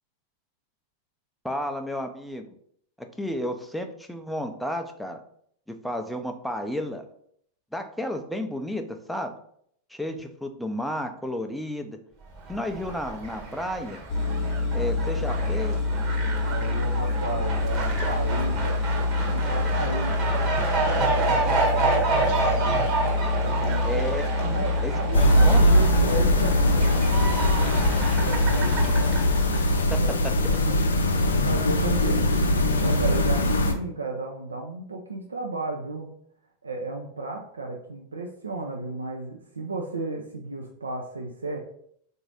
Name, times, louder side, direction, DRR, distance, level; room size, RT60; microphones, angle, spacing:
voice 1, 1.4-2.5 3.0-5.2 5.7-7.1 7.7-9.4 9.9-12.0 12.5-14.0 14.7-15.8 23.8-24.2 24.8-25.7 29.9-30.3, equal, ahead, 5 dB, 0.5 m, -32 dB
Fowl, 12.4-29.7, right 3 dB, 35° right, 1.0 m, -30 dB
sound 1, 14.1-29.6, left 3 dB, 40° left, 0.8 m, -27 dB
voice 2, 16.4-20.4 20.8-22.8 23.4-23.9 24.4-27.7 28.2-29.2 30.0-30.1 30.5-36.1 36.6-41.6, right 2 dB, 75° right, 0 dB, 0.5 m, -34 dB
sound 2, 25.1-33.7, left 1 dB, 75° left, 0.5 m, -22 dB
3.9 x 2.7 x 4.7 m, 0.67 s
figure-of-eight pair, 90°, 0 cm